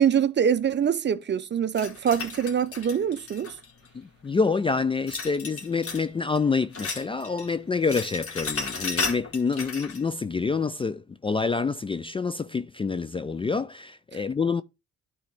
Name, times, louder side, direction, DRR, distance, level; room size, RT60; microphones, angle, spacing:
voice 1, 0.0-3.6, right 8 dB, 35° right, 0.6 m, -24 dB
sound 1, 1.7-3.9 5.1-6.1 6.4-7.5 7.7-10.0, left 4 dB, 50° left, 2.0 m, -34 dB
voice 2, 3.9-14.6, left 4 dB, 20° left, 0.3 m, -27 dB
11.5 x 4.1 x 3.5 m
cardioid pair, 90°, 30 cm